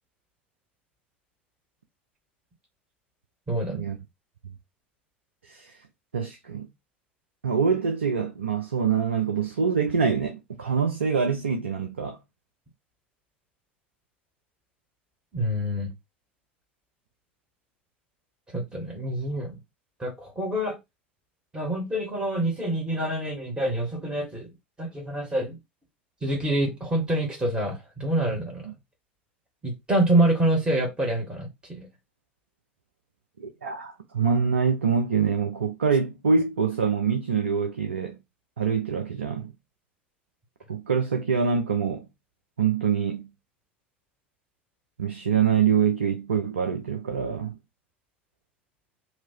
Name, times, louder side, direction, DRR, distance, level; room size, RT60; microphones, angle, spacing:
voice 1, 3.5-3.8 15.3-15.9 18.5-19.6 20.0-20.8 21.5-24.5 24.8-25.6 26.2-28.7 29.6-31.9, right 1 dB, 15° right, 1.8 m, -26 dB
voice 2, 5.4-5.8 6.1-6.7 7.4-12.2 28.6-28.7 33.4-38.2 38.6-39.5 40.7-42.1 42.6-43.3 45.0-47.6, right 6 dB, 80° right, 0.6 m, -25 dB
3.0 x 2.8 x 4.5 m
figure-of-eight pair, 75°, 6 cm